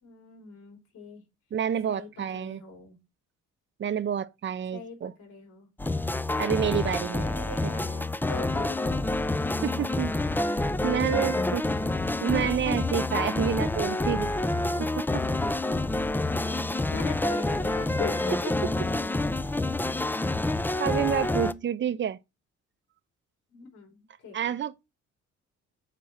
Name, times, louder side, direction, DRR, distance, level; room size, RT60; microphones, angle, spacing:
voice 1, 0.0-1.2 1.9-3.0 4.7-5.7 7.2-9.1 11.6-11.9 16.9-18.5 23.5-24.6, left 5 dB, 85° left, 4.4 m, -41 dB
voice 2, 1.5-2.6 3.8-5.1 6.4-7.3 7.6-7.7 9.6-10.2 10.8-11.9 12.2-14.3 14.8-15.2 20.3-20.4 20.8-22.2 24.3-25.0, right 9 dB, 40° right, 0.6 m, -29 dB
sound 1, 5.8-21.5, left 2 dB, 5° left, 0.4 m, -28 dB
6.0 x 4.2 x 6.2 m
cardioid pair, 90°, 30 cm